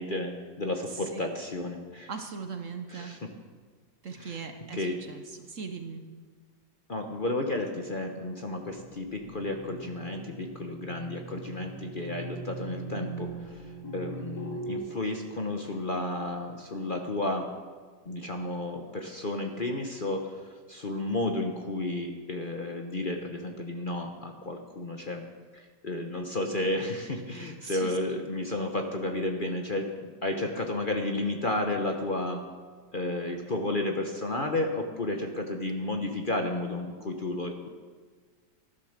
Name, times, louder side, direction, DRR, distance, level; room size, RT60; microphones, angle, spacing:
voice 1, 0.0-2.1 2.9-3.3 4.2-4.4 4.7-5.0 6.9-17.5 18.0-25.2 25.5-32.4 32.9-37.7, left 2 dB, 35° left, 3 dB, 1.0 m, -32 dB
voice 2, 2.1-3.2 4.0-6.1 27.4-28.2, right 5 dB, 55° right, 6 dB, 1.2 m, -40 dB
sound 1, 8.6-14.7, right 2 dB, 60° left, 3.8 m, -41 dB
13.5 x 11.5 x 6.6 m, 1.5 s
omnidirectional pair, 1.8 m